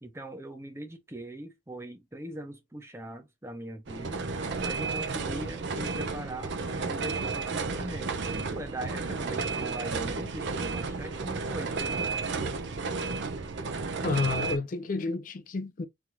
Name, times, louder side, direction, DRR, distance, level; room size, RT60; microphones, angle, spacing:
voice 1, 0.0-4.3 4.6-6.5 6.8-12.5, right 1 dB, 15° right, 0.6 m, -41 dB
sound 1, 3.9-14.6, right 4 dB, 60° right, 0.5 m, -32 dB
voice 2, 14.0-15.8, left 3 dB, 40° left, 0.3 m, -30 dB
3.3 x 2.4 x 2.8 m
head